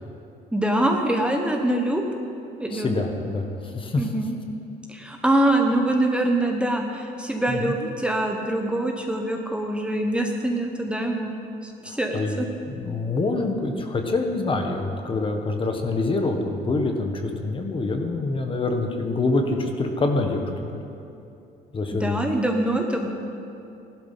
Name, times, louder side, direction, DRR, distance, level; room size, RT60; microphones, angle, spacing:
voice 1, 0.5-2.0 2.6-3.0 4.0-4.3 4.9-11.4 11.6-12.5 21.9-23.1, right 1 dB, 5° right, 2 dB, 1.1 m, -24 dB
voice 2, 2.7-3.5 3.7-4.1 7.5-7.7 11.9-12.4 12.7-20.8 21.7-22.2, left 3 dB, 30° left, 4 dB, 1.5 m, -26 dB
15.0 x 12.0 x 5.8 m, 2.7 s
cardioid pair, 110°, 17 cm